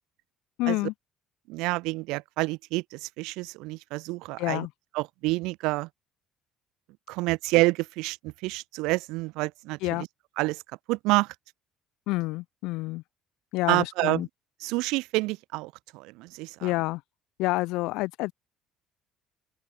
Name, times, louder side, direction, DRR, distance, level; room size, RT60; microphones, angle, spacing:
voice 1, 0.6-0.9 4.4-4.7 9.8-10.0 12.1-13.0 13.5-14.3 16.6-17.0 17.4-18.3, left 21 dB, 80° left, 6.7 m, -28 dB
voice 2, 1.5-4.7 4.9-5.9 7.1-10.1 10.4-10.6 10.9-11.3 13.7-14.3 14.6-16.7, right 22 dB, 85° right, 7.3 m, -28 dB
cardioid pair, 145°, 0 cm